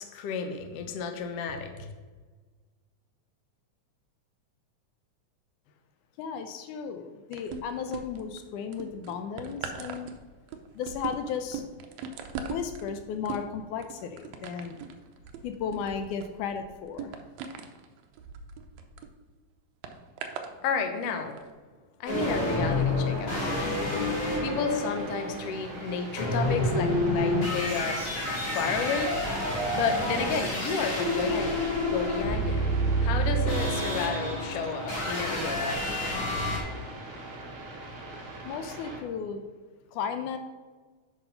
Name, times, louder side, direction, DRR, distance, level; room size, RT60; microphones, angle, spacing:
voice 1, 0.0-1.9 20.6-21.4 22.0-28.0 28.4-29.1 29.7-31.6 31.9-32.7 33.0-35.9 36.4-36.5, left 5 dB, 65° left, 6 dB, 1.7 m, -32 dB
voice 2, 6.2-10.1 10.7-11.6 12.3-14.8 15.4-17.2 38.4-39.5 39.9-40.4, left 6 dB, 80° left, 7 dB, 2.1 m, -35 dB
sound 1, 7.3-8.4 8.7-19.1 19.8-20.5 21.3-21.4, right 5 dB, 75° right, 1.8 m, -40 dB
sound 2, 22.1-36.6, left 1 dB, 35° left, 2.7 m, -29 dB
sound 3, 23.0-39.0, right 2 dB, 50° right, 2.1 m, -42 dB
8.1 x 5.6 x 5.6 m, 1.4 s
omnidirectional pair, 3.5 m